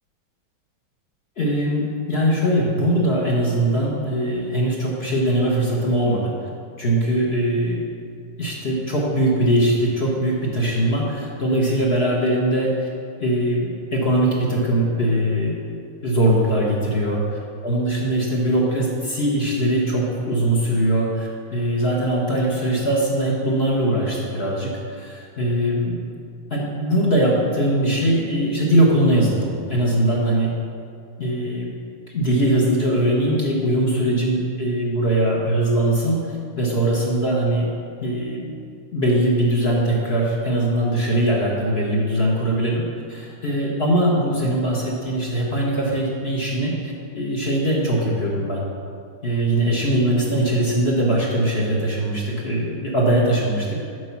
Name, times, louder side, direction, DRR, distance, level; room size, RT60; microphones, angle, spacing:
voice 1, 1.4-6.3 6.8-7.8 8.4-12.9 13.2-15.6 16.0-17.2 17.6-24.7 25.0-26.0 26.5-30.5 31.2-31.7 32.1-37.7 38.0-38.5 38.9-42.8 43.1-48.6 49.2-53.8, right 1 dB, 40° left, -3 dB, 1.0 m, -21 dB
8.2 x 4.6 x 5.7 m, 2.4 s
omnidirectional pair, 2.2 m